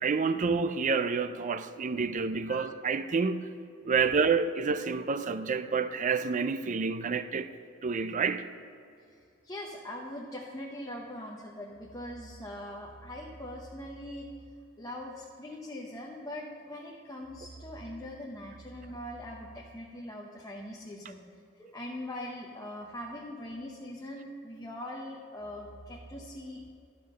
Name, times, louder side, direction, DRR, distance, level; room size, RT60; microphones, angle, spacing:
voice 1, 0.0-3.5 3.9-7.5 7.8-8.5, right 5 dB, 40° right, 0.4 m, -28 dB
voice 2, 9.4-14.3 14.8-21.2 21.6-26.7, left 1 dB, 15° left, 0.8 m, -41 dB
12.5 x 5.3 x 6.5 m
head